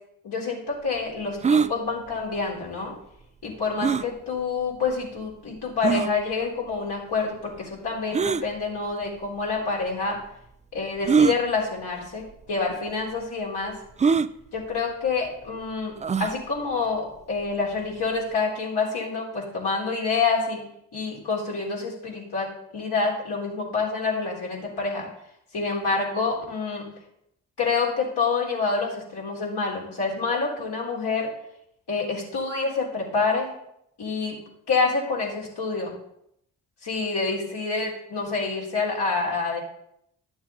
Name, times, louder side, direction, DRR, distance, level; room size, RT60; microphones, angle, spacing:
voice 1, 0.2-2.9 3.4-10.2 10.7-13.8 14.5-20.6 20.9-22.5 22.7-25.1 25.5-26.9 27.6-31.3 31.9-33.5 34.0-34.4 34.7-35.9 36.8-39.6, left 4 dB, 65° left, -3 dB, 3.7 m, -27 dB
sound 1, 1.4-1.7 3.8-4.1 4.9-5.0 5.8-6.1 8.1-8.4 9.5-9.6 11.0-11.4 12.3-12.4 12.7-12.8 14.0-14.3 16.0-16.4, right 6 dB, 20° right, 0.3 m, -21 dB
11.5 x 7.1 x 3.8 m, 0.76 s
supercardioid pair, 50°, 43 cm